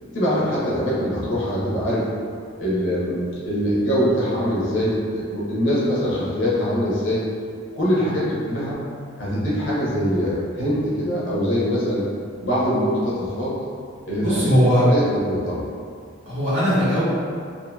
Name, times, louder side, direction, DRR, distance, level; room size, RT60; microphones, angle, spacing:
voice 1, 0.1-2.0 2.6-7.2 7.7-8.8 9.2-12.0 12.4-13.5 14.1-14.5 14.8-15.6, equal, 70° left, -8 dB, 0.8 m, -23 dB
voice 2, 14.2-14.8 16.2-17.0, equal, 65° right, -12 dB, 1.2 m, -19 dB
2.7 x 2.7 x 2.2 m, 2.2 s
head